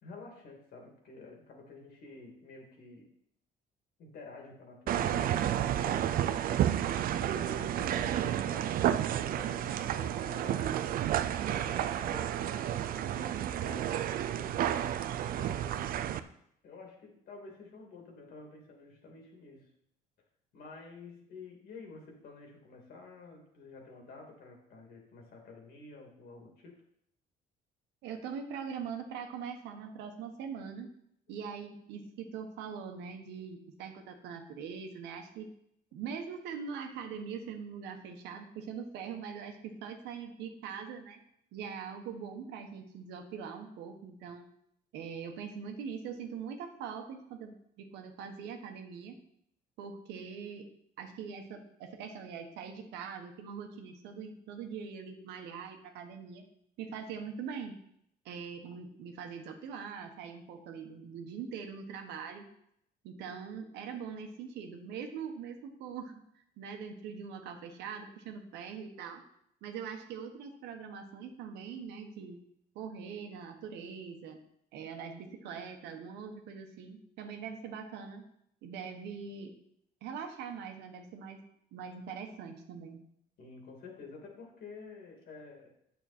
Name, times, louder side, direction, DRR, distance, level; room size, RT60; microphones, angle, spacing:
voice 1, 0.0-3.1 4.0-6.7 7.3-10.8 11.5-14.7 15.1-16.0 16.6-19.7 20.5-26.8 83.4-85.7, left 3 dB, 65° left, 0 dB, 2.7 m, -50 dB
sound 1, 4.9-16.2, right 11 dB, 60° right, 0.5 m, -31 dB
voice 2, 7.1-7.4 7.7-8.1 28.0-31.0 31.3-35.5 35.9-41.2 41.5-44.5 44.9-49.1 49.8-50.7 51.0-56.4 56.8-57.8 58.2-62.4 63.0-66.2 66.6-69.2 69.6-72.4 72.7-74.4 74.7-78.2 78.6-79.5 80.0-81.4 81.7-83.0, right 6 dB, 85° right, 5 dB, 1.3 m, -42 dB
8.8 x 7.1 x 4.3 m, 0.72 s
cardioid pair, 110°, 17 cm